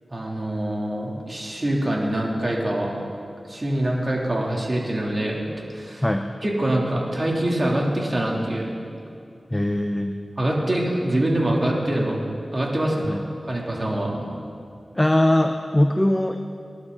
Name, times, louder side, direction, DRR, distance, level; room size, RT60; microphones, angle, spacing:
voice 1, 0.1-3.0 3.4-5.5 5.7-6.0 6.4-8.7 10.4-12.2 12.5-14.5, right 1 dB, 35° right, -3 dB, 3.3 m, -24 dB
voice 2, 9.5-10.2 13.0-13.2 15.0-16.4, left 1 dB, 15° left, 5 dB, 0.8 m, -21 dB
25.5 x 11.5 x 4.1 m, 2.4 s
wide cardioid pair, 60°, 0 cm